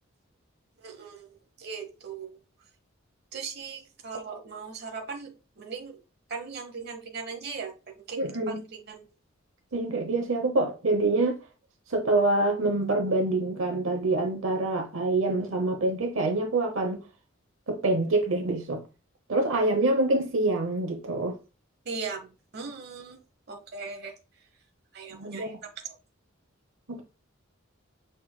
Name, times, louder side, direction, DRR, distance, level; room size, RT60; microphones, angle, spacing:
voice 1, 0.8-2.4 3.3-6.0 6.3-7.7 8.1-8.2 8.5-9.1 21.8-23.2 23.5-24.1 24.9-26.0, right 5 dB, 55° right, 1.1 m, -39 dB
voice 2, 8.2-8.6 9.7-11.4 11.9-17.0 17.7-18.8 19.3-21.4 25.1-25.6 26.9-27.0, right 2 dB, 85° right, 0.8 m, -26 dB
6.2 x 3.7 x 2.3 m
head